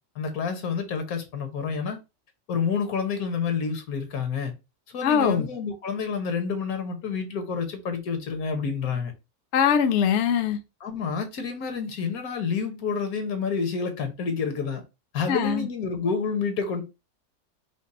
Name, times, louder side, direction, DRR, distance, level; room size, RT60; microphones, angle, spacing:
voice 1, 0.1-2.0 2.5-4.5 4.9-9.1 10.8-14.8 15.1-16.8, left 5 dB, 80° left, 1.5 m, -29 dB
voice 2, 5.0-5.5 9.5-10.6 15.3-15.7, left 8 dB, 60° left, 0.8 m, -22 dB
5.0 x 2.0 x 4.1 m
omnidirectional pair, 1.5 m